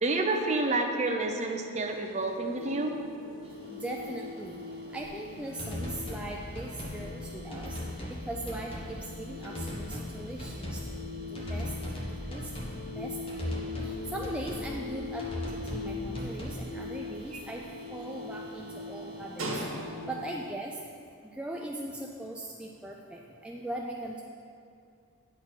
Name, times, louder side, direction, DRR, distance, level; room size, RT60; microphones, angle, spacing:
voice 1, 0.0-2.9, right 2 dB, 35° right, 3 dB, 0.6 m, -29 dB
sound 1, 1.8-20.5, left 4 dB, 65° left, 0.5 m, -42 dB
voice 2, 3.4-4.6 4.9-7.8 8.1-10.9 11.3-11.7 12.3-12.5 13.0-13.5 13.8-19.5 19.7-20.8 21.3-24.2, right 1 dB, 5° right, -1 dB, 0.3 m, -40 dB
sound 2, 3.4-20.3, right 1 dB, 85° right, 1.6 m, -47 dB
sound 3, 5.0-5.1 5.6-6.3 6.6-7.0 7.5-8.2 8.5-8.9 9.4-10.1 10.4-10.9 11.3-12.8 13.3-13.9 14.2-14.7 15.2-15.9 16.1-16.6, equal, 25° left, 1.2 m, -37 dB
9.5 x 4.2 x 6.2 m, 2.4 s
head